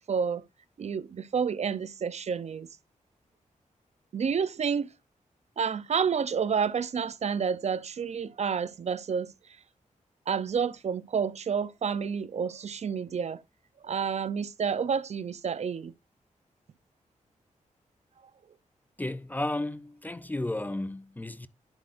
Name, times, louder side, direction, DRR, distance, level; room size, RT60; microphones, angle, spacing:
voice 1, 0.1-0.4 0.8-2.7 4.1-4.9 5.6-9.3 10.3-13.4 13.8-15.9, right 6 dB, 55° right, 0.6 m, -29 dB
voice 2, 19.0-21.5, left 1 dB, 15° left, 0.5 m, -33 dB
10.5 x 7.7 x 2.5 m
wide cardioid pair, 150°, 14 cm